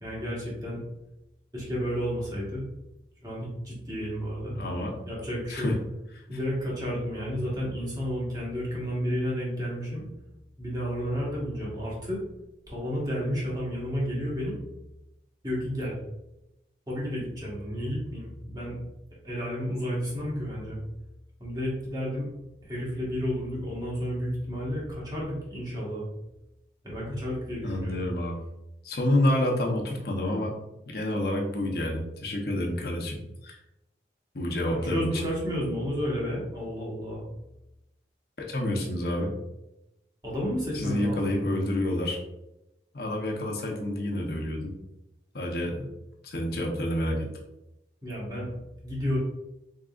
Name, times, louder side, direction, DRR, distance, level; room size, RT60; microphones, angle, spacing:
voice 1, 0.0-0.8 1.5-2.7 3.2-4.5 5.0-5.7 6.3-10.0 10.6-12.2 12.7-14.6 15.4-16.0 16.9-18.8 19.2-20.8 21.4-22.3 22.6-26.0 26.8-28.0 34.7-37.2 40.2-41.5 48.0-48.5 48.8-49.2, equal, 20° right, -6 dB, 1.4 m, -31 dB
voice 2, 4.5-4.9 5.5-5.7 27.6-28.4 28.8-30.5 30.9-33.6 34.3-35.1 38.4-39.3 40.7-42.2 42.9-44.7 45.3-45.9 46.2-47.3, left 1 dB, 60° left, 0 dB, 0.8 m, -28 dB
4.0 x 3.7 x 2.4 m, 0.92 s
head